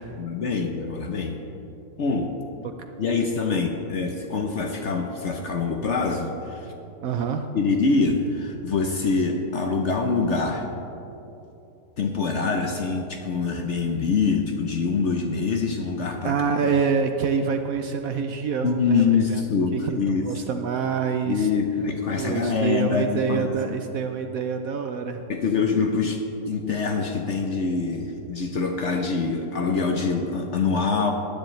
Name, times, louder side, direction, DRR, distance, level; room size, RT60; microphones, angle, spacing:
voice 1, 0.2-1.4 2.0-2.4 3.0-6.7 7.5-10.7 12.0-16.4 18.6-20.3 21.2-23.8 25.3-31.1, left 4 dB, 55° left, 3 dB, 0.8 m, -25 dB
voice 2, 7.0-7.5 16.2-19.4 19.7-21.5 22.2-25.2, right 6 dB, 70° right, 6 dB, 0.9 m, -26 dB
18.5 x 9.9 x 3.1 m, 2.9 s
omnidirectional pair, 1.8 m